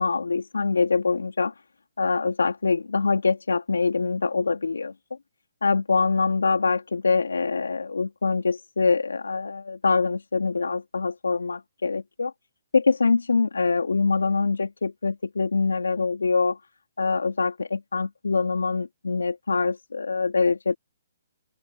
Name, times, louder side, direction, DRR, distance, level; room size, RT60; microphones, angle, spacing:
voice 1, 0.0-1.5 2.0-4.9 5.6-12.3 12.7-16.6 17.0-20.8, left 4 dB, 90° left, 2.8 m, -24 dB
open air
hypercardioid pair, 140°, 0 cm